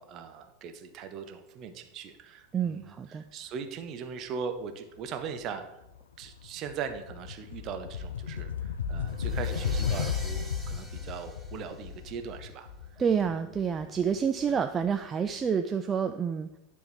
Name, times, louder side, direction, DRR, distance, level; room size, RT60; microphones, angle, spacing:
voice 1, 0.0-5.6 6.2-12.7 13.2-13.5 14.5-14.6, right 6 dB, 40° right, 7 dB, 0.9 m, -40 dB
voice 2, 2.5-3.2 13.0-16.5, right 7 dB, 25° right, 8 dB, 0.4 m, -28 dB
sound 1, 5.4-5.6 6.0-14.8, left 7 dB, 70° left, 0.5 m, -34 dB
sound 2, 9.1-12.3, right 1 dB, ahead, 1.1 m, -46 dB
10.5 x 3.6 x 6.1 m, 0.87 s
figure-of-eight pair, 85°, 0 cm